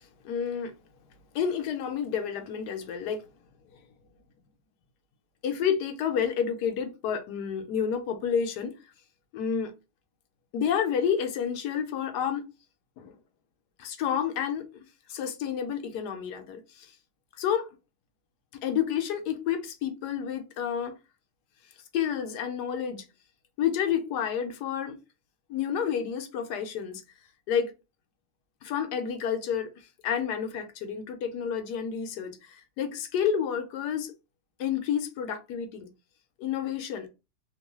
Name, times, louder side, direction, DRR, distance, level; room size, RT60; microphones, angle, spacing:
voice 1, 0.2-0.7 1.3-3.2 5.4-8.8 9.3-9.7 10.5-12.5 13.0-13.1 13.8-14.7 15.1-16.9 17.4-17.7 18.6-20.9 21.9-23.0 23.6-25.0 25.5-27.0 27.5-27.7 28.6-29.7 30.0-34.1 34.6-35.9 36.4-37.1, left 8 dB, 80° left, 1.2 m, -30 dB
2.9 x 2.2 x 3.0 m
omnidirectional pair, 1.8 m